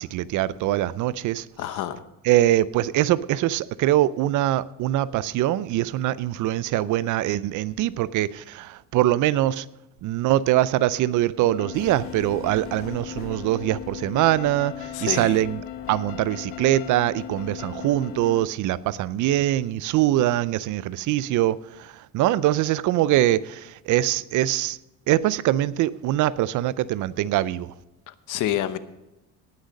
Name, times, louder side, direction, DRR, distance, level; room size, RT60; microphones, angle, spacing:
voice 1, 0.0-1.5 2.2-9.7 10.0-15.6 15.9-24.8 25.1-27.7, right 14 dB, 60° right, 19 dB, 0.5 m, -23 dB
voice 2, 1.6-2.0 14.9-15.4 28.1-28.8, left 12 dB, 60° left, 13 dB, 0.9 m, -28 dB
sound 1, 11.6-18.4, left 12 dB, 85° left, 1.1 m, -37 dB
sound 2, 11.7-18.3, left 2 dB, 40° left, 2.0 m, -45 dB
18.0 x 6.4 x 5.2 m, 0.96 s
cardioid pair, 125°, 35 cm